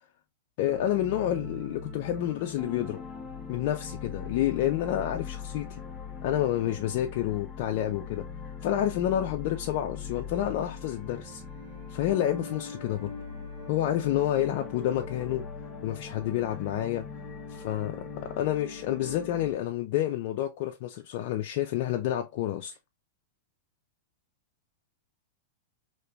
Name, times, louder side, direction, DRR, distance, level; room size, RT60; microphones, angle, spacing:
voice 1, 0.6-3.0 3.5-5.8 6.2-8.3 8.6-11.4 11.9-13.1 13.7-15.5 15.8-17.1 17.6-22.8, left 12 dB, 55° left, 0.4 m, -29 dB
sound 1, 0.6-19.5, left 5 dB, 15° left, 0.6 m, -41 dB
Bowed string instrument, 10.5-15.7, right 7 dB, 75° right, 0.8 m, -53 dB
3.2 x 2.8 x 2.2 m
supercardioid pair, 140°, 0 cm